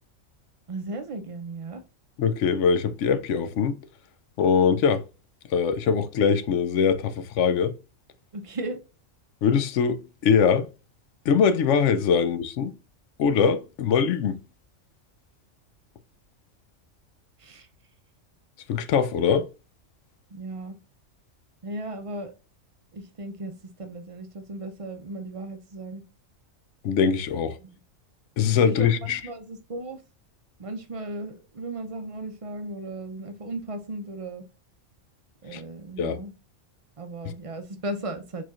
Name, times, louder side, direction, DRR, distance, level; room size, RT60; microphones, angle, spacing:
voice 1, 0.7-1.8 8.3-8.8 17.4-17.7 20.3-20.8 21.6-22.3 22.9-26.0 28.6-30.0 30.6-34.4 35.4-36.3 37.0-38.4, right 2 dB, 50° right, 0.4 m, -36 dB
voice 2, 2.2-3.8 4.4-5.0 5.5-7.8 9.4-10.7 11.3-12.7 13.2-14.4 18.7-19.5 26.8-27.6 28.4-29.2 35.5-35.6 36.0-36.2, left 6 dB, 70° left, 0.9 m, -22 dB
4.5 x 4.1 x 2.4 m
omnidirectional pair, 1.4 m